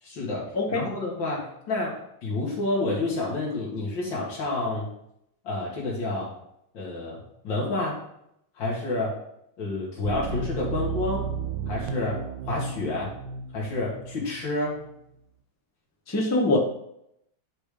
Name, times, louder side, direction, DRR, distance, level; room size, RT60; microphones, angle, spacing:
voice 1, 0.0-4.9 5.4-6.3 6.7-8.0 8.6-9.2 9.6-11.3 11.7-13.1 13.5-14.8, left 2 dB, 85° left, -5 dB, 2.4 m, -29 dB
sound 1, 10.0-14.4 14.7-14.9, right 5 dB, 85° right, 1.3 m, -33 dB
voice 2, 16.1-16.6, left 2 dB, 15° left, 0 dB, 0.7 m, -23 dB
9.2 x 3.5 x 5.0 m, 0.77 s
omnidirectional pair, 2.0 m